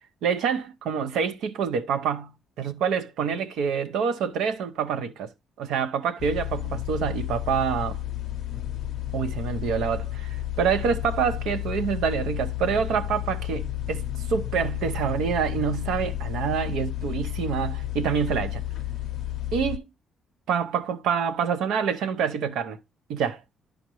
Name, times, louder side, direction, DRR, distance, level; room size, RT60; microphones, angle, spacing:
voice 1, 0.2-2.3 2.6-5.3 5.6-8.0 9.1-18.6 19.5-19.8 20.5-22.8 23.1-23.4, right 7 dB, 85° right, 0.6 m, -27 dB
sound 1, 6.2-19.8, left 12 dB, 70° left, 0.6 m, -31 dB
10.5 x 5.0 x 3.0 m
cardioid pair, 90°, 0 cm